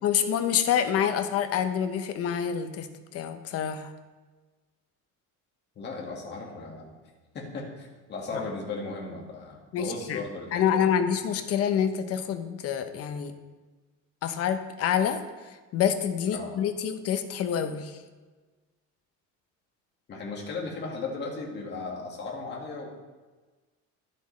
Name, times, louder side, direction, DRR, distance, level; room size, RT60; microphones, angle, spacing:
voice 1, 0.0-2.9 3.1-3.9 9.7-10.2 10.5-13.3 14.2-15.2 15.7-18.0, left 8 dB, 50° left, 9 dB, 0.7 m, -27 dB
voice 2, 5.8-6.9 7.3-10.9 16.3-16.5 20.1-22.9, left 3 dB, 35° left, -2 dB, 1.8 m, -36 dB
12.0 x 7.7 x 3.2 m, 1.3 s
cardioid pair, 160°, 31 cm